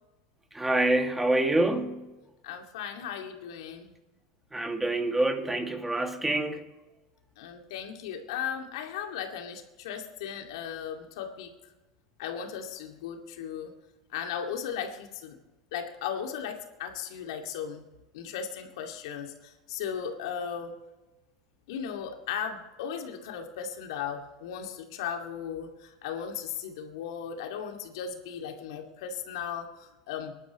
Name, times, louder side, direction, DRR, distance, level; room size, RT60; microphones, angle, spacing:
voice 1, 0.5-2.1 4.5-6.6, right 2 dB, 10° right, 2.3 m, -26 dB
voice 2, 2.4-3.9 7.4-11.5 12.2-13.7 14.1-15.4 15.7-17.9 18.1-20.7 21.7-30.3, left 8 dB, 70° left, 2.4 m, -36 dB
24.5 x 12.0 x 3.2 m
hypercardioid pair, 90°, 3 cm